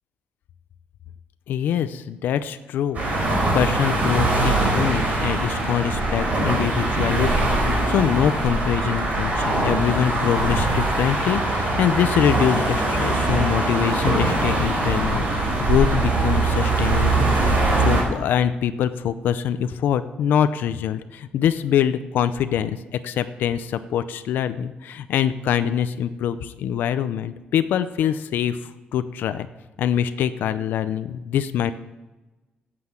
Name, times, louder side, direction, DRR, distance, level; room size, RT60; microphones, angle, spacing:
voice 1, 1.5-3.0 3.5-7.6 7.9-15.2 15.6-29.5 29.8-31.7, left 9 dB, 85° left, 11 dB, 0.6 m, -24 dB
sound 1, 2.9-18.0, right 2 dB, 50° right, 4.1 m, -22 dB
9.6 x 7.8 x 8.6 m, 1.1 s
cardioid pair, 135°, 3 cm